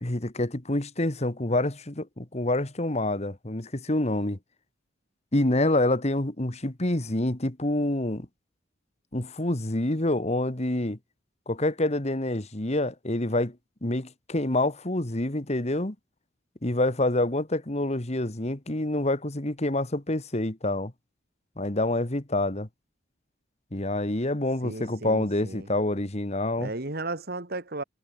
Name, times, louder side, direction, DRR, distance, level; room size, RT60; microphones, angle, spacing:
voice 1, 0.0-4.4 5.3-8.3 9.1-11.0 11.5-13.6 13.8-16.0 16.6-20.9 21.6-22.7 23.7-26.7, left 1 dB, 35° left, 1.9 m, -27 dB
voice 2, 24.6-25.7 26.6-27.8, right 2 dB, 55° right, 2.4 m, -35 dB
head